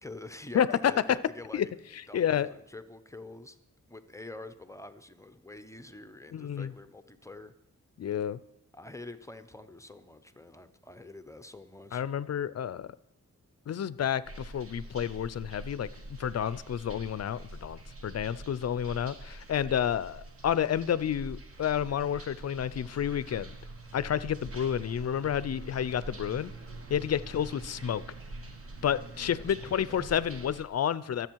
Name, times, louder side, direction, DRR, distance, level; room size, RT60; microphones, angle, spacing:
voice 1, 0.0-1.7 2.1-3.6 3.9-7.5 8.7-12.0 29.2-30.4, left 2 dB, 10° left, 10 dB, 0.6 m, -46 dB
voice 2, 0.5-1.2 1.5-1.7 2.1-2.5 6.3-6.7 8.0-8.4 11.9-12.9 13.7-23.5 23.9-26.5 26.9-28.0 28.8-31.3, left 9 dB, 55° left, 18 dB, 0.5 m, -30 dB
sound 1, 14.2-30.6, right 2 dB, 45° right, 1.5 m, -45 dB
23.5 x 8.0 x 4.6 m, 0.83 s
wide cardioid pair, 165°, 31 cm